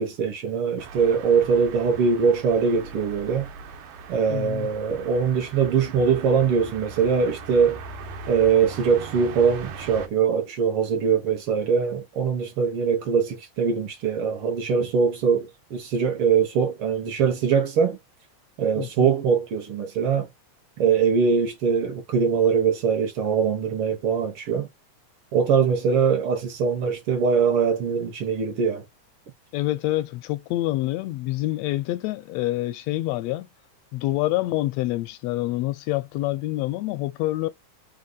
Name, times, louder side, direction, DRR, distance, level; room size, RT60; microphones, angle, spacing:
voice 1, 0.0-3.5 4.1-7.8 8.3-18.0 18.6-20.3 20.8-24.7 25.3-28.8, right 6 dB, 65° right, 1.4 m, -22 dB
sound 1, 0.8-10.1, right 4 dB, 85° right, 2.3 m, -40 dB
voice 2, 4.3-4.7 18.8-19.1 29.5-33.5 33.9-37.5, left 17 dB, 80° left, 1.6 m, -27 dB
4.9 x 2.3 x 3.8 m
omnidirectional pair, 3.4 m